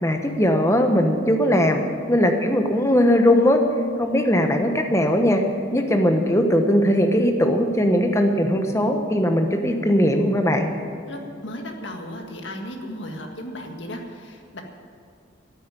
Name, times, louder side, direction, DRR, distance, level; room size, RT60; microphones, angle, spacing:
voice 1, 0.0-1.8 2.1-3.6 4.0-5.4 5.7-10.7, equal, 15° left, 4 dB, 1.1 m, -19 dB
voice 2, 11.1-14.6, left 1 dB, 75° left, 3 dB, 1.8 m, -35 dB
12.5 x 9.4 x 9.0 m, 2.4 s
head